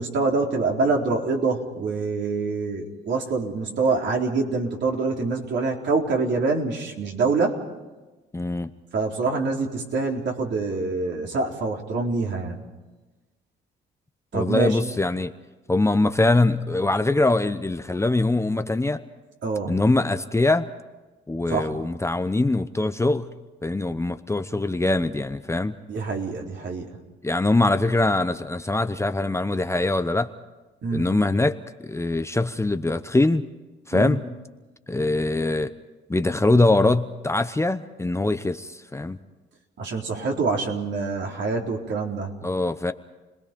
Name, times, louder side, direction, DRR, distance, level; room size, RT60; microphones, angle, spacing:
voice 1, 0.0-7.6 8.9-12.6 14.3-14.8 19.4-19.7 21.5-21.7 25.9-26.9 30.8-31.1 33.9-34.2 39.8-42.3, right 4 dB, 65° right, 0 dB, 3.9 m, -25 dB
voice 2, 8.3-8.7 14.3-15.3 15.7-19.0 19.7-20.7 21.3-23.3 23.6-25.7 27.2-30.3 30.9-33.4 33.9-34.2 34.9-35.7 36.1-39.2 42.4-42.9, left 2 dB, 15° left, 9 dB, 0.9 m, -23 dB
29.5 x 20.0 x 5.3 m, 1.2 s
cardioid pair, 90°, 20 cm